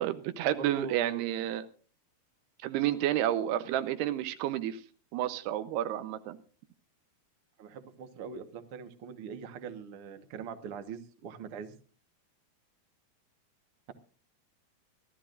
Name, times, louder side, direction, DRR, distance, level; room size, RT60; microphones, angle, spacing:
voice 1, 0.0-1.7 2.6-4.8 5.1-6.4, right 12 dB, 90° right, 3.0 m, -30 dB
voice 2, 0.5-1.3 7.6-11.7, right 6 dB, 60° right, 1.4 m, -42 dB
23.5 x 13.5 x 2.5 m
omnidirectional pair, 4.6 m